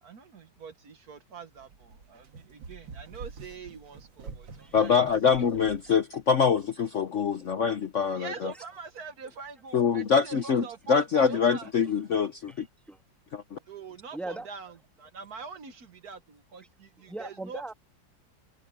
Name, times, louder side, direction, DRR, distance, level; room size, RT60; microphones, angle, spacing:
voice 1, 0.0-5.0 8.2-11.7 13.7-17.6, right 5 dB, 55° right, 1.7 m, -44 dB
sound 1, 1.6-5.9, right 5 dB, 85° right, 2.3 m, -46 dB
voice 2, 4.7-8.5 9.7-12.7 13.3-13.6, left 6 dB, 55° left, 0.9 m, -25 dB
voice 3, 14.1-14.5 17.1-17.7, right 2 dB, ahead, 1.2 m, -38 dB
omnidirectional pair, 2.0 m